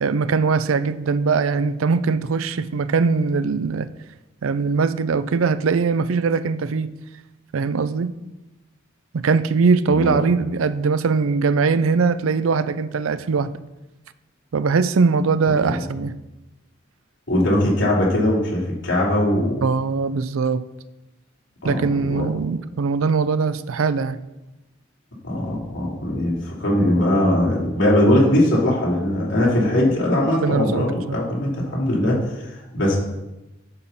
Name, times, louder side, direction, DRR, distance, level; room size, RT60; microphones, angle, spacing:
voice 1, 0.0-3.9 4.4-6.9 7.5-8.1 9.1-13.5 14.5-16.2 19.6-20.7 21.6-24.2 30.3-31.2, right 4 dB, 85° right, 0.5 m, -21 dB
voice 2, 17.3-19.6 21.6-22.2 25.2-33.0, left 1 dB, 60° left, 3.3 m, -20 dB
11.0 x 5.8 x 4.1 m
head